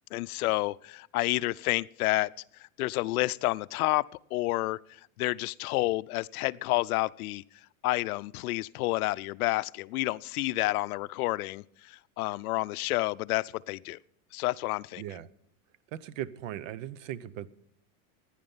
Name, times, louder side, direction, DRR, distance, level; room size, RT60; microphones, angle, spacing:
voice 1, 0.1-2.3 2.8-4.8 5.2-7.4 7.8-14.0 14.3-15.2, left 19 dB, 80° left, 0.6 m, -29 dB
voice 2, 15.0-15.3 15.9-17.5, right 11 dB, 60° right, 0.8 m, -38 dB
16.0 x 10.5 x 5.6 m
supercardioid pair, 155°, 43 cm